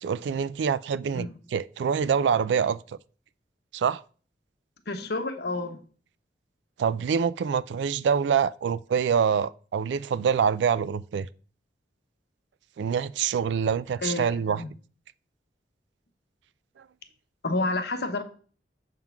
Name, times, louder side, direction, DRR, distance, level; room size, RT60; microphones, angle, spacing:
voice 1, 0.0-3.0 3.7-4.0 6.8-11.3 12.8-14.6 16.8-16.9, right 7 dB, 75° right, 0.3 m, -25 dB
voice 2, 4.9-5.8 14.0-14.7 17.4-18.2, left 2 dB, 60° left, 1.0 m, -30 dB
7.4 x 3.8 x 5.8 m
head